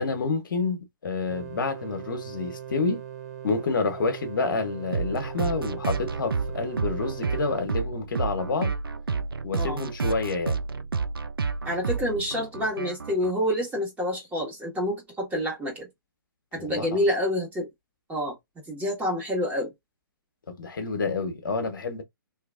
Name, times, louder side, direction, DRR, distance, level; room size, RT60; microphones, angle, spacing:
voice 1, 0.0-3.0 3.4-8.7 9.4-10.6 16.6-17.0 20.5-22.0, left 4 dB, 65° left, 1.0 m, -28 dB
sound 1, 1.3-7.7, right 10 dB, 50° right, 0.7 m, -40 dB
sound 2, 4.9-13.3, right 4 dB, 85° right, 0.5 m, -30 dB
voice 2, 11.6-15.9 16.5-17.7 18.1-18.3 18.7-19.7, equal, 10° right, 1.5 m, -28 dB
3.2 x 2.8 x 2.4 m
figure-of-eight pair, 125°, 12 cm